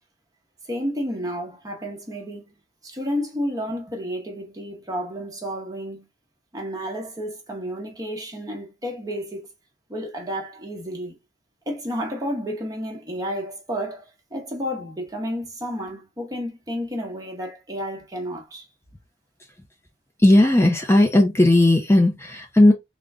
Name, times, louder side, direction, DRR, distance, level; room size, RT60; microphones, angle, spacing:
voice 1, 0.7-2.5 2.8-6.1 6.5-9.5 9.9-11.1 11.7-14.0 14.3-18.7, equal, 20° right, 1.0 m, -31 dB
voice 2, 20.2-22.7, left 1 dB, 15° left, 0.5 m, -16 dB
3.7 x 2.1 x 3.5 m
head